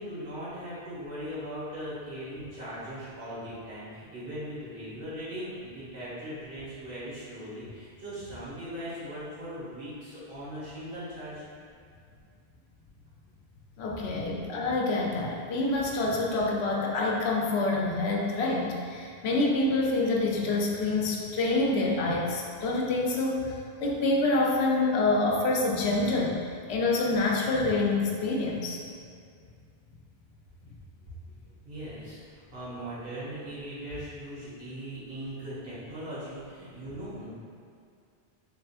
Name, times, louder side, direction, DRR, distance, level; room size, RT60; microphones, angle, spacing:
voice 1, 0.0-11.4 31.6-37.3, equal, 65° right, -11 dB, 1.6 m, -39 dB
voice 2, 13.8-23.6 23.8-28.8, left 2 dB, 85° left, -2 dB, 0.9 m, -27 dB
3.6 x 3.5 x 2.4 m, 2.2 s
omnidirectional pair, 1.1 m